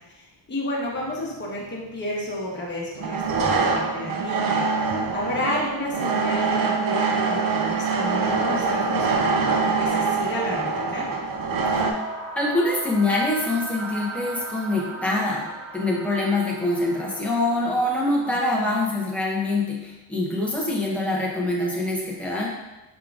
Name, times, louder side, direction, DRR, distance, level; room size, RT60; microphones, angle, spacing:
voice 1, 0.1-11.1 18.2-18.8, left 1 dB, 25° left, -5 dB, 1.0 m, -31 dB
sound 1, 1.0-1.1 3.0-11.9, right 4 dB, 50° right, 0.5 m, -24 dB
sound 2, 11.7-18.0, right 3 dB, 30° right, 0.9 m, -37 dB
voice 2, 12.4-15.5 15.7-22.5, left 2 dB, 5° left, -4 dB, 0.7 m, -24 dB
4.9 x 3.7 x 2.4 m, 1.0 s
wide cardioid pair, 160°, 44 cm